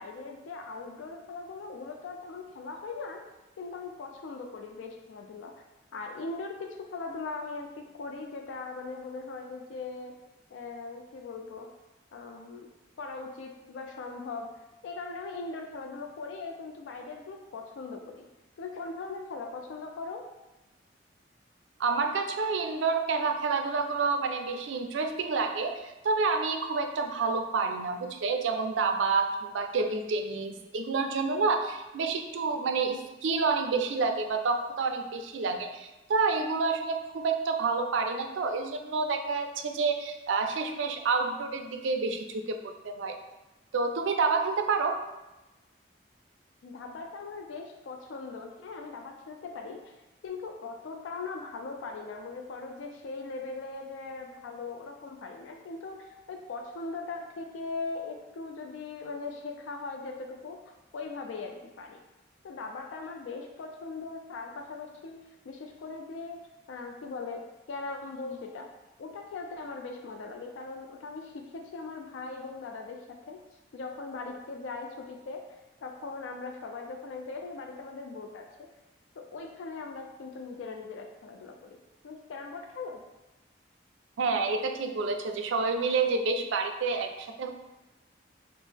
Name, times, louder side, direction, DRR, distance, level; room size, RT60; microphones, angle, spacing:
voice 1, 0.0-3.2 3.6-5.5 5.9-10.1 10.5-11.7 12.1-12.7 13.0-18.3 18.6-20.2 46.6-50.0 50.2-60.6 60.9-62.0 62.4-65.2 65.4-66.4 66.7-68.7 69.0-73.4 73.7-75.4 75.8-78.7 79.2-81.8 82.0-83.0, left 3 dB, 85° left, 3 dB, 0.4 m, -40 dB
voice 2, 21.8-43.2 43.7-45.0 84.2-87.5, right 4 dB, 85° right, 6 dB, 0.4 m, -29 dB
4.4 x 2.0 x 3.4 m, 1.0 s
head